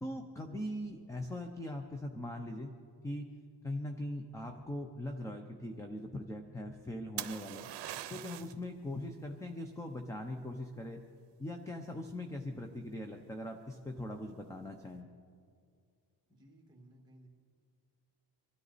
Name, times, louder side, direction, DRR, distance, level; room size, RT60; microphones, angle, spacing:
voice 1, 0.0-2.7 3.0-3.3 3.6-7.7 8.1-11.0 11.4-15.1, left 1 dB, 5° left, 5 dB, 0.6 m, -41 dB
sound 1, 7.2-8.6 12.3-12.8, right 12 dB, 75° right, 0.7 m, -42 dB
voice 2, 16.3-17.3, right 1 dB, 10° right, -1 dB, 2.0 m, -59 dB
24.5 x 13.0 x 4.1 m, 2.2 s
wide cardioid pair, 165°, 42 cm